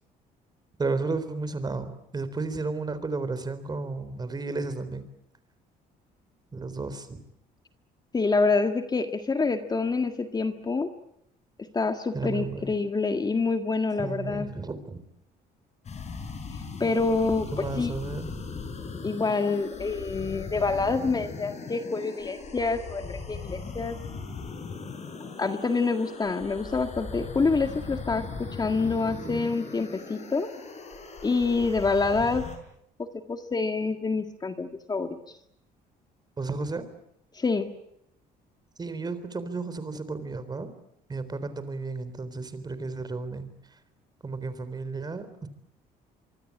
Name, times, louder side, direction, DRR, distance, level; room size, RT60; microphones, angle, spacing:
voice 1, 0.8-5.1 6.5-7.2 12.1-12.8 14.0-15.0 17.5-18.3 29.2-29.5 36.4-36.9 38.8-40.7 41.1-43.5 44.2-45.5, right 3 dB, 25° right, 12 dB, 3.9 m, -33 dB
voice 2, 8.1-10.9 11.6-14.5 16.8-17.9 19.0-24.0 25.4-30.5 31.2-32.4 33.0-35.2 37.3-37.7, left 4 dB, 25° left, 7 dB, 1.8 m, -27 dB
sound 1, 15.8-32.6, left 4 dB, 40° left, 6.1 m, -39 dB
25.5 x 23.5 x 8.6 m, 0.76 s
cardioid pair, 110°, 17 cm